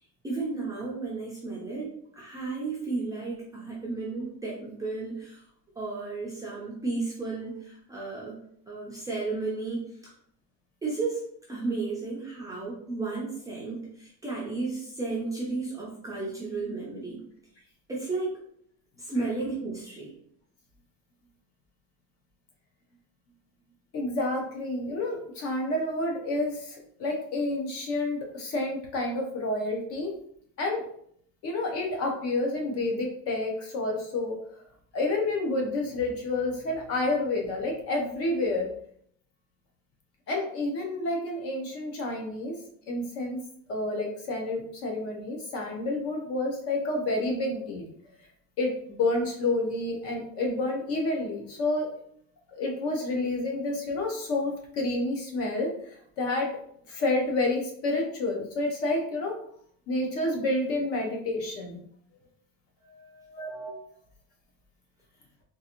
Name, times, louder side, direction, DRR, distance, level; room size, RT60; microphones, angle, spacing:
voice 1, 0.2-5.4 5.8-8.4 8.7-9.8 10.8-11.2 11.5-17.2 17.9-18.3 19.0-20.1 62.8-63.3, right 3 dB, 10° right, -6 dB, 0.5 m, -33 dB
voice 2, 23.9-30.1 30.6-30.8 31.4-34.4 34.9-38.7 40.3-42.6 42.9-43.4 43.7-47.9 48.6-51.9 52.5-56.5 56.9-59.4 59.9-61.8 63.4-63.7, left 2 dB, 40° left, 1 dB, 0.7 m, -29 dB
3.7 x 2.5 x 2.9 m, 0.65 s
cardioid pair, 175°, 36 cm